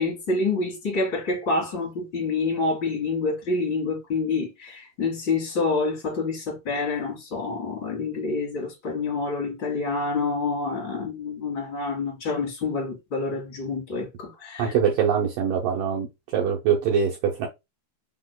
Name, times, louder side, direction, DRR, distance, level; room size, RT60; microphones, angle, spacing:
voice 1, 0.0-14.7, left 3 dB, 40° left, 1.8 m, -27 dB
voice 2, 14.6-16.1 16.3-17.5, right 7 dB, 80° right, 1.9 m, -23 dB
5.9 x 3.7 x 2.2 m
omnidirectional pair, 4.7 m